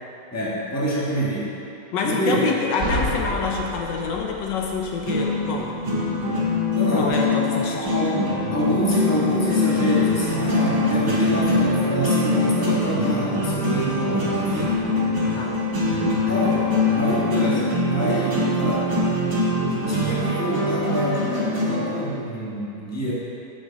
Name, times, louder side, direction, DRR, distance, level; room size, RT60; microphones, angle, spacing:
voice 1, 0.3-1.5 2.0-2.5 6.7-7.1 7.7-8.2 8.5-14.8 16.3-18.9 19.9-23.1, equal, 10° left, -7 dB, 1.3 m, -26 dB
voice 2, 1.9-5.7 6.9-7.9 15.4-15.5, left 5 dB, 75° left, 0 dB, 1.4 m, -26 dB
sound 1, 2.8-13.1 13.4-16.0 16.3-16.4 17.1-17.5 17.8-17.9 18.6-18.7, equal, 50° right, 1.3 m, -37 dB
sound 2, 5.0-22.0, left 2 dB, 70° right, 2.4 m, -23 dB
8.0 x 7.3 x 4.1 m, 3.0 s
omnidirectional pair, 2.0 m